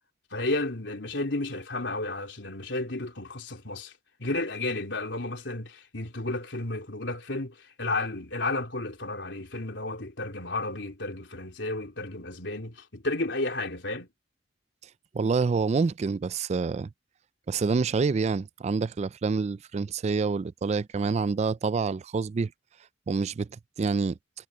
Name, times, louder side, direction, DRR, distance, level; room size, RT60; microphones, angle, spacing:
voice 1, 0.3-3.9 4.2-14.1, left 2 dB, 90° left, 3.4 m, -32 dB
voice 2, 15.1-16.9 17.5-22.5 23.1-23.5 23.8-24.2, right 4 dB, 40° right, 0.3 m, -27 dB
head